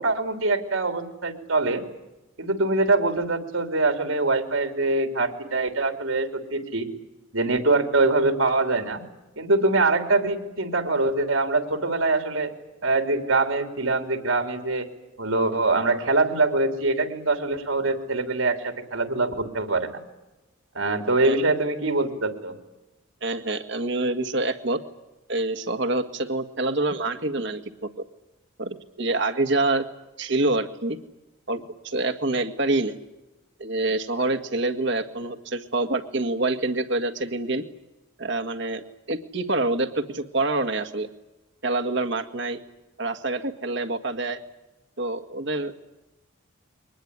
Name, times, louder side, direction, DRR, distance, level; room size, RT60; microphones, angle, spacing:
voice 1, 0.0-1.8 2.4-6.9 7.3-9.0 9.4-12.5 12.8-14.9 15.2-20.0 20.7-22.6, right 2 dB, 70° right, 6 dB, 3.2 m, -23 dB
voice 2, 23.2-24.8 25.3-28.1 28.6-29.9 30.2-31.0 31.5-33.0 33.6-37.6 38.2-41.1 41.6-42.6 43.0-44.4 45.0-45.7, right 2 dB, 55° right, 8 dB, 1.9 m, -26 dB
23.5 x 20.0 x 9.8 m, 1.0 s
head